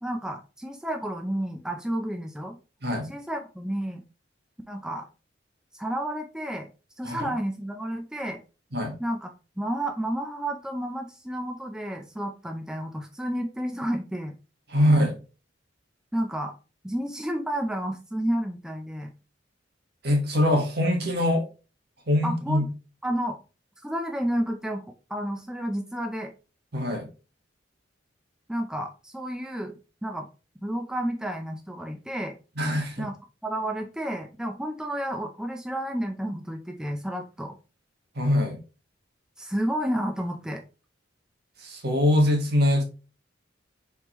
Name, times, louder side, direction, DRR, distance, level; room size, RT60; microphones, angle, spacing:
voice 1, 0.0-2.6 3.0-4.0 4.7-5.1 5.7-6.7 7.0-8.4 9.0-9.3 9.6-14.4 16.1-16.5 16.8-19.1 22.2-22.7 23.0-23.4 23.8-26.3 28.5-30.3 30.6-32.3 33.0-33.1 33.4-37.5 39.4-40.6, right 1 dB, 5° right, 3 dB, 0.4 m, -31 dB
voice 2, 14.7-15.1 20.0-21.4 22.1-22.6 26.7-27.1 32.6-33.1 38.1-38.6 41.6-42.8, left 1 dB, 60° right, 3 dB, 1.3 m, -23 dB
4.5 x 3.6 x 3.0 m, 0.33 s
head